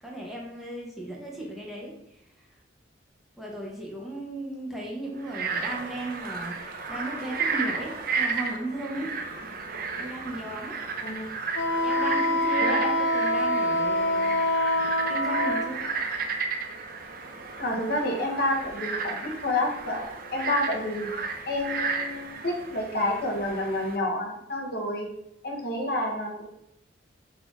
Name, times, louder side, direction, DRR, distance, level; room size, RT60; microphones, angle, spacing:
voice 1, 0.0-1.9 3.4-6.6 6.9-9.1 10.0-10.8 11.8-14.3 14.8-15.8, right 1 dB, ahead, -4 dB, 1.0 m, -36 dB
Frog, 5.2-24.0, right 5 dB, 50° right, 0.5 m, -33 dB
Wind instrument woodwind instrument, 11.5-15.7, left 1 dB, 75° left, 0.5 m, -25 dB
voice 2, 12.6-12.9 17.6-21.1 21.5-25.1 25.4-26.5, left 1 dB, 55° left, 0 dB, 1.0 m, -29 dB
3.9 x 2.8 x 4.6 m, 0.83 s
head